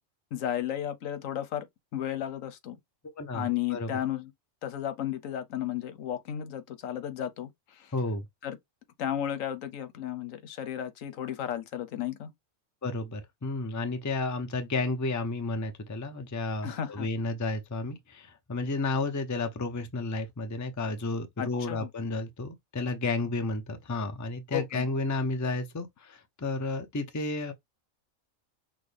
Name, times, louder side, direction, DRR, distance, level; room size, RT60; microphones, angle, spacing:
voice 1, 0.3-1.7 1.9-2.8 3.3-4.3 4.6-7.9 8.4-8.6 9.0-12.3 16.6-17.1 21.4-21.9 24.5-24.9, left 10 dB, 85° left, 1.2 m, -33 dB
voice 2, 3.1-3.9 7.9-8.2 12.8-27.5, left 3 dB, 20° left, 0.5 m, -32 dB
6.1 x 2.2 x 3.3 m
omnidirectional pair, 1.3 m